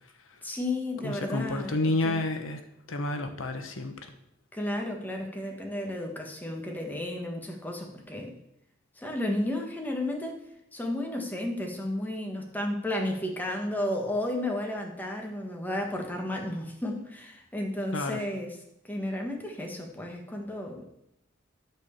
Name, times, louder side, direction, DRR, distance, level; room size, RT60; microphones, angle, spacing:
voice 1, 0.4-1.8 2.0-2.2 4.5-8.3 9.0-10.4 10.7-18.6 18.8-20.9, left 1 dB, 10° left, 1 dB, 1.5 m, -33 dB
voice 2, 1.0-2.6 2.9-4.1 17.9-18.2, left 2 dB, 75° left, 7 dB, 1.1 m, -30 dB
12.0 x 4.5 x 7.1 m, 0.80 s
head